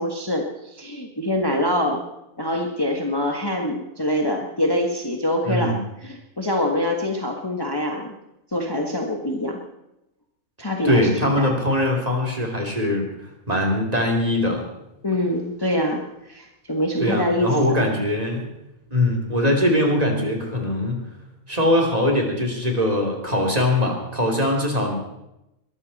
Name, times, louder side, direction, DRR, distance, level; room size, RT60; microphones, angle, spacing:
voice 1, 0.0-2.0 2.4-5.8 6.0-8.1 8.5-9.6 10.6-11.1 11.4-11.5 15.0-17.8, left 1 dB, 15° left, 2 dB, 1.6 m, -25 dB
voice 2, 5.4-5.8 10.8-14.6 17.0-18.5 18.9-21.0 21.5-24.9, left 1 dB, 25° right, 1 dB, 3.3 m, -22 dB
22.0 x 14.0 x 4.2 m, 0.88 s
omnidirectional pair, 1.5 m